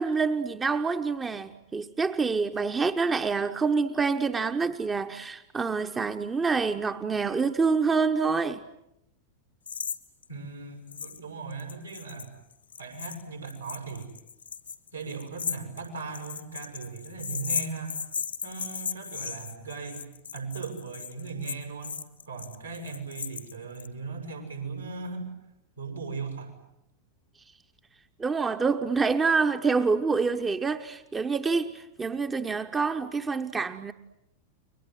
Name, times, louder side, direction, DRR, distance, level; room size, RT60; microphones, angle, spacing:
voice 1, 0.0-8.6 28.2-33.9, right 4 dB, 15° right, 1.0 m, -27 dB
sound 1, 9.7-10.0 10.2-10.3 10.9-11.2 11.5-23.9, left 6 dB, 75° left, 1.7 m, -36 dB
voice 2, 10.3-12.3 12.8-14.1 14.9-18.0 18.4-20.0 20.3-21.9 22.3-25.3 25.8-26.5, right 4 dB, 80° right, 7.1 m, -38 dB
30.0 x 23.5 x 7.9 m
figure-of-eight pair, 90°, 0 cm